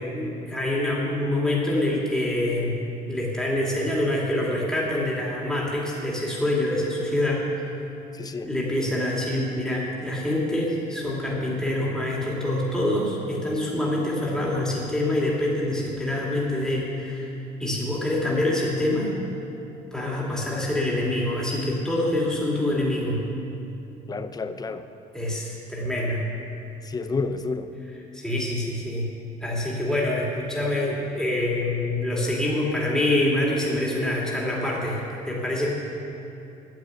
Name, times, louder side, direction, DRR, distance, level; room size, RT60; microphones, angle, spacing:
voice 1, 0.0-2.8 3.0-7.6 8.4-17.3 17.6-19.1 19.9-23.2 25.1-26.3 28.1-29.1 29.4-35.0 35.3-35.7, left 1 dB, 5° left, -5 dB, 2.5 m, -25 dB
voice 2, 8.1-8.5 24.1-24.9 26.8-27.7, left 4 dB, 25° left, 10 dB, 0.6 m, -30 dB
9.5 x 7.1 x 9.1 m, 2.7 s
cardioid pair, 110°, 17 cm